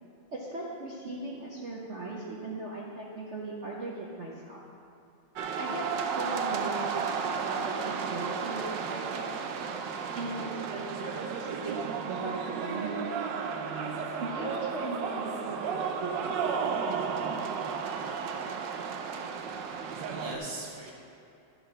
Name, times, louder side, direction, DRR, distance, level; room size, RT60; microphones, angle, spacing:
voice 1, 0.3-4.6 5.6-9.3 10.1-13.3 14.2-16.3, right 2 dB, 50° right, -4 dB, 0.9 m, -38 dB
sound 1, 5.4-20.4, right 6 dB, 70° right, 1.2 m, -33 dB
voice 2, 19.4-20.9, right 2 dB, 15° left, -5 dB, 1.0 m, -42 dB
11.5 x 5.5 x 6.0 m, 2.8 s
omnidirectional pair, 2.3 m